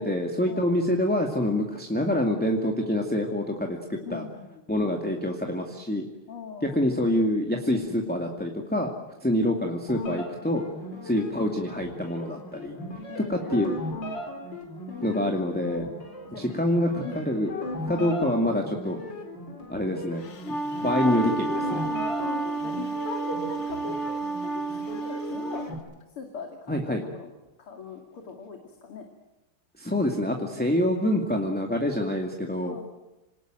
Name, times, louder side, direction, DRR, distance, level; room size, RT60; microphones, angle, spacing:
voice 1, 0.0-4.2 4.7-6.0 6.6-8.9 9.2-10.6 11.0-12.8 13.2-13.8 15.0-15.9 16.3-17.5 17.8-19.0 19.7-20.2 20.8-21.8 26.7-27.0 29.8-32.8, left 1 dB, 5° left, 2 dB, 2.2 m, -26 dB
voice 2, 4.0-4.6 6.3-6.8 10.8-11.1 13.1-13.5 14.9-16.5 17.0-17.2 18.9-19.3 21.6-24.2 24.5-25.7 26.2-27.3 27.6-29.1 30.6-30.8 32.6-32.8, left 4 dB, 85° left, 4 dB, 3.5 m, -41 dB
sound 1, 9.9-25.7, left 2 dB, 55° left, 5.0 m, -38 dB
Wind instrument woodwind instrument, 20.2-25.7, right 3 dB, 40° left, 1.4 m, -30 dB
27.5 x 19.0 x 9.1 m, 1.0 s
omnidirectional pair, 2.4 m